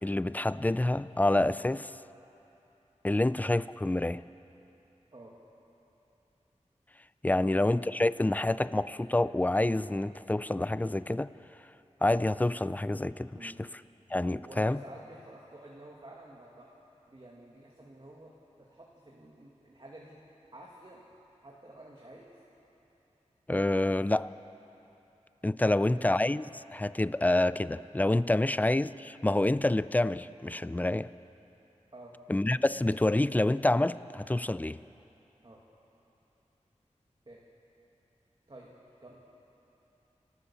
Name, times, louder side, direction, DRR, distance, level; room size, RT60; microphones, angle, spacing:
voice 1, 0.0-1.9 3.0-4.2 7.2-11.3 12.0-13.7 14.1-14.8 23.5-24.3 25.4-26.4 26.7-31.1 32.3-34.8, left 1 dB, 15° left, 16 dB, 0.4 m, -27 dB
voice 2, 14.3-16.7 17.1-18.3 18.6-20.2 20.5-21.0 21.4-22.3 25.6-26.1 28.4-28.6 31.9-32.1 35.4-35.6 37.3-37.4 38.5-38.7 39.0-39.2, right 1 dB, 40° right, -3 dB, 2.2 m, -50 dB
29.5 x 13.0 x 7.1 m, 3.0 s
wide cardioid pair, 70°, 12 cm